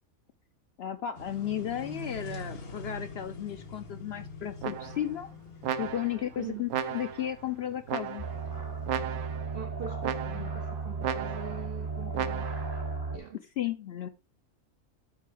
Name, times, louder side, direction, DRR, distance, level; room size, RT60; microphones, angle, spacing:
voice 1, 0.8-5.3 5.8-8.3 10.3-10.5 13.6-14.1, left 11 dB, 65° left, 0.6 m, -34 dB
sound 1, 1.1-8.9, left 1 dB, 85° left, 1.8 m, -45 dB
sound 2, 4.6-5.2 5.6-6.3 6.7-7.3 7.9-8.5 8.9-9.5 10.0-10.6 11.0-11.6 12.1-12.7, right 9 dB, 85° right, 1.1 m, -35 dB
sound 3, 8.2-13.2, right 4 dB, 25° right, 0.6 m, -35 dB
voice 2, 9.5-12.5 13.1-13.4, right 9 dB, 70° right, 0.5 m, -42 dB
8.3 x 3.8 x 4.8 m
omnidirectional pair, 1.5 m